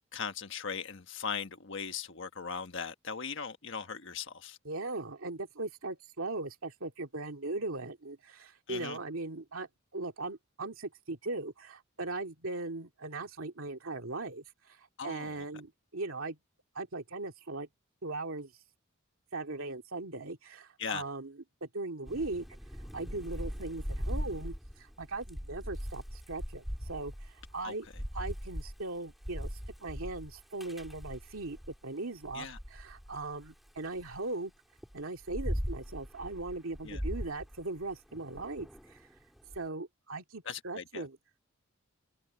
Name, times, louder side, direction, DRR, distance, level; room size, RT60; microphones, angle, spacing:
voice 1, 0.1-4.6 8.7-9.0 15.0-15.4 20.8-21.0 27.6-27.7 32.3-32.6 36.8-37.0 40.4-41.1, left 6 dB, 65° left, 1.4 m, -39 dB
voice 2, 4.6-16.4 16.7-17.7 18.0-18.5 19.3-21.3 21.6-22.5 22.8-27.9 28.1-34.5 34.9-39.1 39.5-41.2, right 2 dB, 85° right, 2.3 m, -39 dB
Thunder / Rain, 22.0-31.8 32.2-34.2 34.8-39.6, equal, ahead, 4.0 m, -40 dB
head